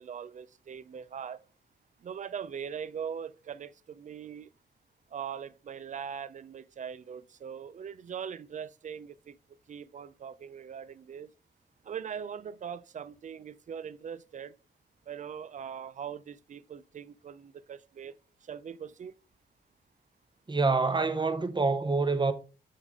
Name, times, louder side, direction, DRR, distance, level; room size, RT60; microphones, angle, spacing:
voice 1, 0.0-1.4 2.0-4.5 5.1-9.4 9.7-11.3 11.8-14.5 15.1-18.1 18.4-19.1, right 7 dB, 40° right, 0.4 m, -41 dB
voice 2, 20.5-22.3, right 3 dB, 25° right, 0.9 m, -26 dB
8.3 x 3.6 x 3.5 m
cardioid pair, 70°, 19 cm